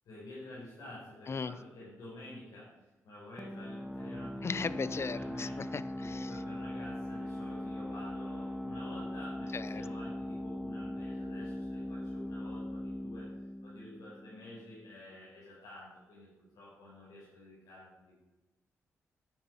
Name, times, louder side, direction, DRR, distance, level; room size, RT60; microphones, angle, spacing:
voice 1, 0.0-2.7 3.0-5.5 6.0-13.3 13.6-18.2, left 1 dB, 85° left, -9 dB, 4.9 m, -49 dB
sound 1, 3.4-14.8, left 1 dB, ahead, 1.5 m, -40 dB
voice 2, 4.4-6.3 9.5-9.8, left 5 dB, 45° left, 17 dB, 0.6 m, -37 dB
10.5 x 8.9 x 5.7 m, 1.1 s
supercardioid pair, 50°, 6 cm